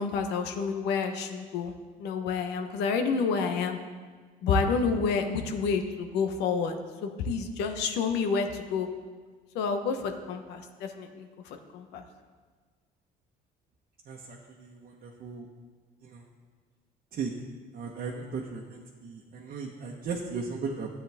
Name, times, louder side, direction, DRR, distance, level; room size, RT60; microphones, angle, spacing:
voice 1, 0.0-1.7 2.0-3.8 4.4-8.9 9.5-12.0, left 5 dB, 90° left, 6 dB, 1.1 m, -29 dB
voice 2, 14.1-15.5 16.0-16.2 17.1-17.3 17.7-20.9, right 5 dB, 55° right, -2 dB, 1.1 m, -37 dB
13.5 x 8.6 x 3.5 m, 1.5 s
cardioid pair, 110°, 17 cm